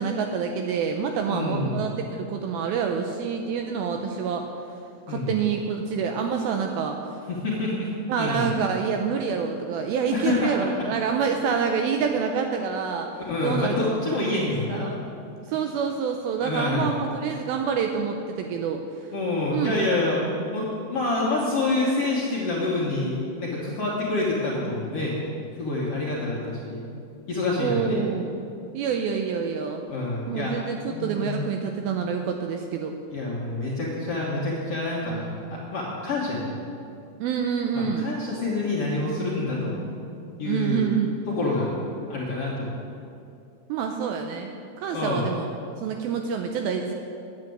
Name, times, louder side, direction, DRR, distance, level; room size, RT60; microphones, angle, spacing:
voice 1, 0.0-4.5 5.1-7.0 8.1-13.1 13.4-14.3 14.7-15.0 15.5-19.1 19.5-19.7 27.6-28.3 28.7-29.9 30.3-33.0 37.2-38.1 40.4-41.2 43.7-44.5 44.8-45.5 45.8-46.9, right 6 dB, 85° right, 4 dB, 2.2 m, -27 dB
voice 2, 1.3-1.8 5.1-5.3 7.3-7.9 8.2-8.5 10.1-10.5 13.1-14.9 16.4-16.9 19.1-20.2 20.5-25.2 25.6-26.8 27.3-28.0 29.9-30.5 30.9-31.4 33.1-36.5 37.7-39.7 40.4-40.9 41.3-41.7 42.1-42.7 44.9-45.3, left 2 dB, 55° left, -6 dB, 1.7 m, -27 dB
10.5 x 8.3 x 7.8 m, 2.6 s
omnidirectional pair, 4.8 m